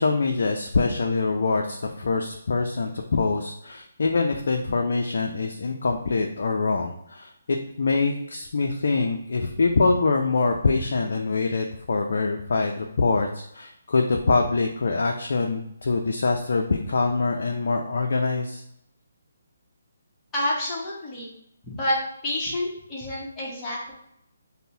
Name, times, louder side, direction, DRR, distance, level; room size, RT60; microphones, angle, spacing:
voice 1, 0.0-18.6, left 3 dB, 65° left, 2 dB, 0.4 m, -24 dB
voice 2, 20.3-21.3 21.7-22.0 22.2-23.9, left 1 dB, 15° left, -7 dB, 1.0 m, -28 dB
5.2 x 2.1 x 2.7 m, 0.76 s
figure-of-eight pair, 145°, 0 cm